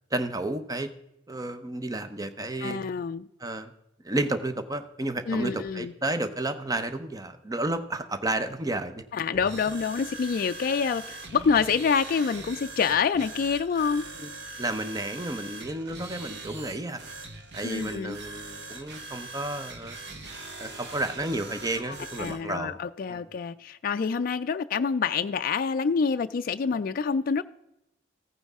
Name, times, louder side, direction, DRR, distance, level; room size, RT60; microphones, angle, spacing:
voice 1, 0.1-0.9 1.3-2.8 3.4-3.7 4.0-9.0 14.2-14.3 14.6-17.0 17.5-20.0 20.6-22.8 23.1-23.2, right 2 dB, 20° right, 0.7 m, -31 dB
voice 2, 2.6-3.3 5.3-5.9 9.1-14.0 17.6-18.2 21.9-27.4, left 5 dB, 50° left, 0.4 m, -27 dB
sound 1, 9.3-22.4, right 3 dB, 60° right, 1.5 m, -42 dB
15.0 x 9.4 x 3.6 m
head